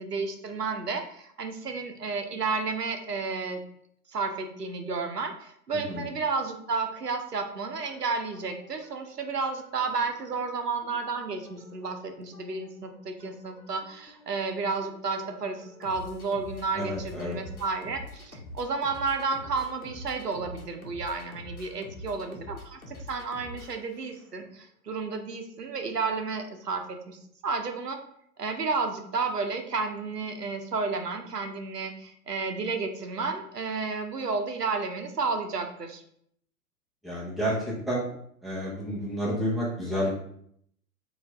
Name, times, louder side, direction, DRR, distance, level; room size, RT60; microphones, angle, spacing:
voice 1, 0.0-3.6 4.1-28.0 28.4-36.0, right 4 dB, 85° right, 5 dB, 0.7 m, -32 dB
sound 1, 7.8-24.5, left 2 dB, 65° left, 1.0 m, -47 dB
voice 2, 16.7-17.4 37.0-38.1 38.4-40.1, equal, ahead, -7 dB, 0.8 m, -30 dB
4.4 x 2.6 x 3.4 m, 0.68 s
figure-of-eight pair, 110°, 46 cm